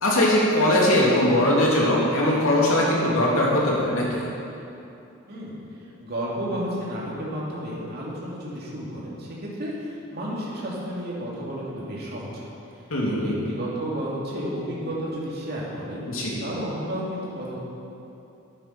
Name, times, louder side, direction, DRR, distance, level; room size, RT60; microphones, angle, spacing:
voice 1, 0.0-4.3 12.9-13.3 16.1-16.4, left 1 dB, 85° left, -4 dB, 2.9 m, -21 dB
voice 2, 5.3-12.5 13.0-16.0 16.4-17.6, equal, 50° right, -5 dB, 2.7 m, -32 dB
10.5 x 10.0 x 6.0 m, 2.8 s
head